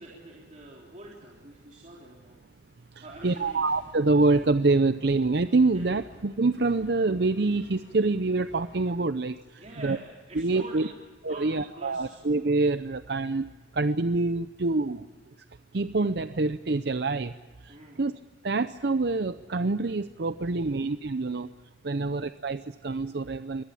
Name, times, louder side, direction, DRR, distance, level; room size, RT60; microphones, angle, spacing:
voice 1, 0.0-2.4 3.0-3.6 5.7-6.1 6.7-6.8 9.6-11.0 11.3-12.2 17.7-18.0 20.4-21.0 21.9-22.1, right 1 dB, 40° right, -3 dB, 3.7 m, -46 dB
sound 1, 3.1-9.0, left 1 dB, 75° left, 6.0 m, -53 dB
voice 2, 3.2-10.0 10.4-10.9 11.2-13.5 13.7-15.1 15.7-17.3 17.6-18.1 18.4-21.5 21.8-23.6, right 3 dB, 60° right, 11 dB, 0.6 m, -26 dB
24.0 x 18.5 x 8.6 m, 1.3 s
head